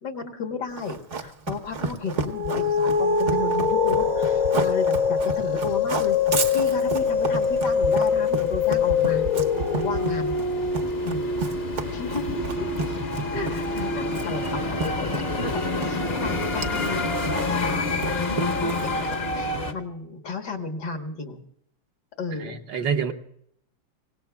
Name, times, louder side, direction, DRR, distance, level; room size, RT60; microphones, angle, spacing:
voice 1, 0.0-6.2 6.5-9.3 9.7-10.4 11.0-11.3 11.9-12.7 13.3-18.2 18.6-21.4 22.2-22.6, left 4 dB, 60° left, 4 dB, 1.8 m, -33 dB
Run, 0.8-19.4, right 4 dB, 45° right, 1.1 m, -32 dB
sound 1, 2.2-15.0, left 5 dB, 85° left, 4.5 m, -25 dB
sound 2, 6.6-19.7, left 2 dB, 35° left, 1.1 m, -29 dB
voice 2, 22.4-23.1, right 6 dB, 65° right, 5 dB, 1.4 m, -27 dB
24.5 x 18.5 x 2.3 m, 0.70 s
omnidirectional pair, 2.2 m